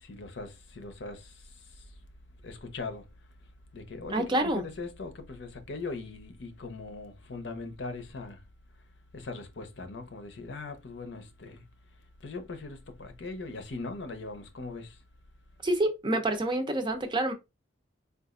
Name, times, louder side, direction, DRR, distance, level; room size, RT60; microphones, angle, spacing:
voice 1, 0.0-1.3 2.4-3.1 3.7-8.4 9.1-11.6 12.2-15.0, left 3 dB, 70° left, 0.7 m, -40 dB
voice 2, 4.1-4.7 15.6-17.3, right 1 dB, 25° right, 0.5 m, -27 dB
4.0 x 2.4 x 2.4 m
head